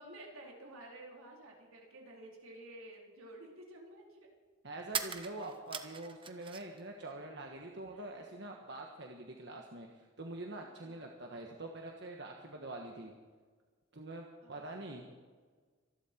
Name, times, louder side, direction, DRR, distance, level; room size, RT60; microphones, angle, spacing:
voice 1, 0.0-4.3 7.9-8.1 10.8-11.1 14.4-14.9, right 1 dB, 80° right, -1 dB, 3.8 m, -52 dB
sound 1, 2.6-2.7 4.8-6.8 7.1-8.0, right 7 dB, 25° right, 0.9 m, -41 dB
voice 2, 4.6-13.1 13.9-15.1, right 2 dB, 55° right, 1 dB, 1.4 m, -45 dB
25.5 x 11.5 x 4.5 m, 1.5 s
head